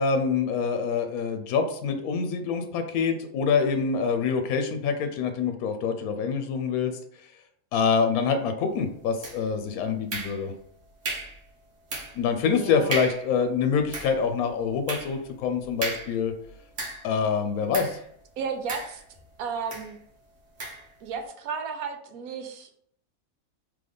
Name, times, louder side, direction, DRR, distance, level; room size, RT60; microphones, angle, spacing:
voice 1, 0.0-6.9 7.7-10.5 12.1-16.3 17.0-18.0, left 6 dB, 85° left, 7 dB, 1.0 m, -26 dB
sound 1, 9.2-9.6 10.1-10.7 11.0-11.4 11.9-12.3 12.6-12.7 12.9-13.3 13.7-17.2 17.7-18.0 18.7-19.3 19.7-19.9 20.6-20.9, right 2 dB, 60° right, 1.4 m, -35 dB
voice 2, 12.4-13.0 18.4-19.0 19.4-20.0 21.0-22.7, right 6 dB, 85° right, 6 dB, 1.1 m, -33 dB
3.8 x 3.2 x 3.4 m, 0.65 s
omnidirectional pair, 1.5 m